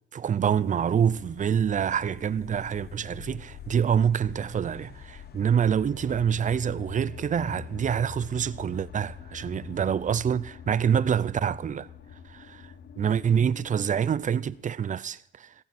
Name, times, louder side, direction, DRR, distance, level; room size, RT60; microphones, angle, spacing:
voice 1, 0.1-11.9 12.3-15.5, right 8 dB, 40° right, 0.6 m, -26 dB
sound 1, 0.5-14.6, left 8 dB, 55° left, 1.0 m, -45 dB
16.5 x 15.5 x 4.3 m
cardioid pair, 90°, 20 cm